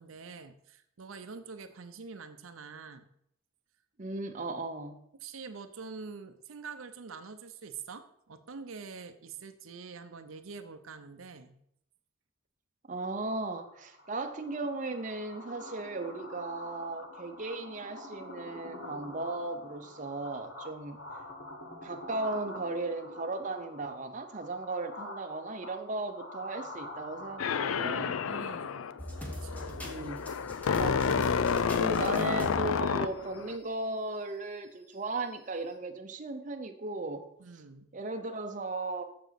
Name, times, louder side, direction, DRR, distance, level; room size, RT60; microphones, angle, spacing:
voice 1, 0.0-3.1 5.2-11.6 28.3-28.9 29.2-30.0 37.4-37.9, right 5 dB, 85° right, 8 dB, 0.7 m, -45 dB
voice 2, 4.0-5.0 12.9-21.0 21.8-28.2 29.8-30.3 30.7-31.2 31.7-37.3 37.9-39.0, right 2 dB, 40° right, 5 dB, 0.7 m, -36 dB
sound 1, 13.6-28.9, left 1 dB, 60° left, 1.3 m, -46 dB
sound 2, 27.4-33.6, left 6 dB, 90° left, 0.4 m, -30 dB
sound 3, 29.0-33.7 34.1-34.2 35.2-35.3, equal, 10° left, 1.2 m, -41 dB
7.1 x 6.8 x 5.8 m, 0.73 s
head